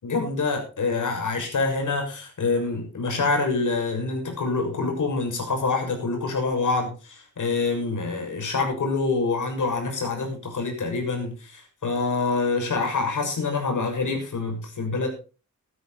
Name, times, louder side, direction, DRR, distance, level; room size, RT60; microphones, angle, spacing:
voice 1, 0.0-15.1, left 3 dB, 70° left, 3 dB, 6.9 m, -26 dB
16.0 x 12.0 x 4.4 m, 0.35 s
wide cardioid pair, 145°, 32 cm